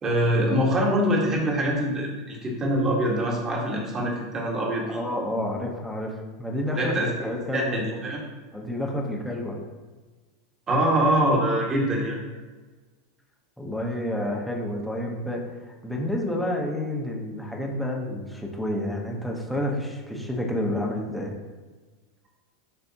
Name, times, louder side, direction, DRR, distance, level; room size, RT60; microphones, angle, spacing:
voice 1, 0.0-5.0 6.8-7.1 7.5-8.2 10.7-12.2, right 1 dB, 25° right, -1 dB, 1.5 m, -24 dB
voice 2, 4.9-8.0 8.5-9.6 13.6-21.3, left 1 dB, ahead, -1 dB, 1.0 m, -30 dB
9.9 x 3.4 x 2.9 m, 1.3 s
supercardioid pair, 130°, 2 cm